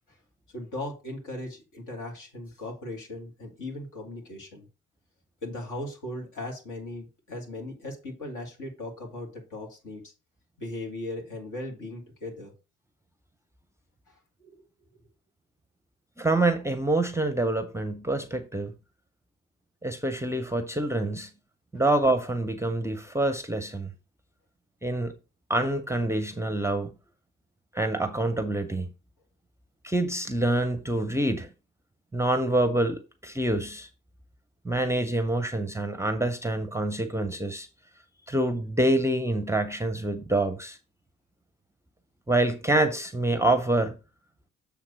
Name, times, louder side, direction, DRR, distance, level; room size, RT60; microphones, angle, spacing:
voice 1, 0.5-4.7 5.4-10.1 10.6-12.5 14.1-14.6 21.7-21.8, left 1 dB, 55° left, 2.6 m, -38 dB
voice 2, 16.2-18.7 19.8-21.3 21.7-23.9 24.8-25.1 25.5-26.9 27.7-28.9 29.8-31.5 32.1-33.9 34.6-37.7 38.3-40.8 42.3-44.0, right 2 dB, 10° right, 0.8 m, -26 dB
7.5 x 3.5 x 6.2 m
figure-of-eight pair, 40°, 36 cm